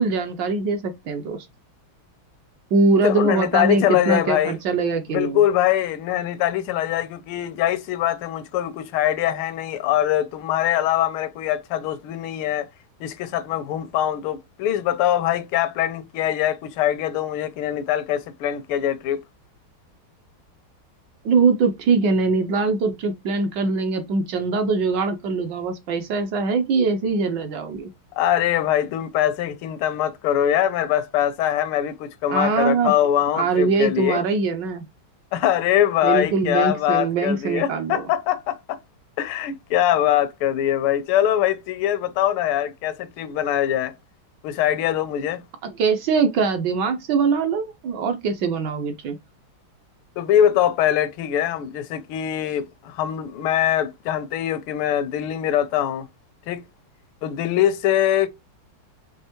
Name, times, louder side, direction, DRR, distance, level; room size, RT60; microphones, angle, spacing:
voice 1, 0.0-1.4 2.7-5.4 21.2-27.9 32.3-32.9 33.3-34.9 36.0-38.0 45.6-49.2, right 4 dB, 70° right, 1.1 m, -22 dB
voice 2, 3.0-4.6 5.1-12.7 13.0-19.2 28.2-34.2 35.3-38.8 39.2-43.9 44.4-45.4 50.2-56.1 56.5-56.6 57.2-58.3, left 11 dB, 80° left, 1.4 m, -22 dB
5.5 x 2.8 x 2.9 m
omnidirectional pair, 2.3 m